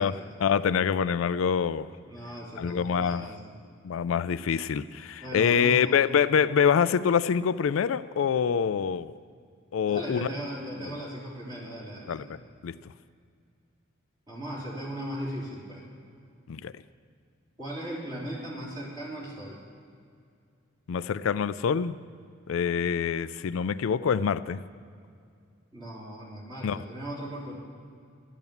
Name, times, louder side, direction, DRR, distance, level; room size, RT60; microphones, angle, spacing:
voice 1, 0.0-1.9 2.6-3.3 3.8-9.1 9.7-10.3 12.1-12.4 12.6-12.7 16.5-16.8 20.9-21.9 22.5-24.6 26.6-26.8, left 7 dB, 80° left, 14 dB, 0.4 m, -25 dB
voice 2, 2.1-3.5 5.2-5.9 9.9-12.3 14.3-15.8 17.6-19.6 25.7-27.5, equal, 20° right, -7 dB, 3.7 m, -38 dB
12.0 x 10.5 x 7.1 m, 2.3 s
head